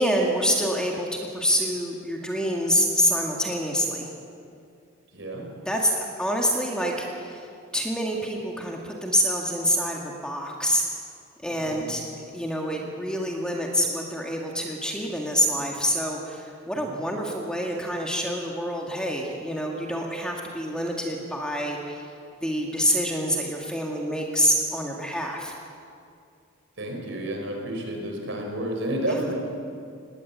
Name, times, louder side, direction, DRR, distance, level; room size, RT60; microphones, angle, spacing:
voice 1, 0.0-4.1 5.7-7.5 7.7-10.8 11.4-22.0 22.4-25.5 29.0-29.3, equal, 5° left, 0 dB, 1.9 m, -26 dB
voice 2, 5.1-5.5 11.5-12.0 16.7-16.9 26.8-29.3, right 1 dB, 60° right, 2 dB, 4.8 m, -31 dB
20.0 x 18.0 x 8.3 m, 2.4 s
head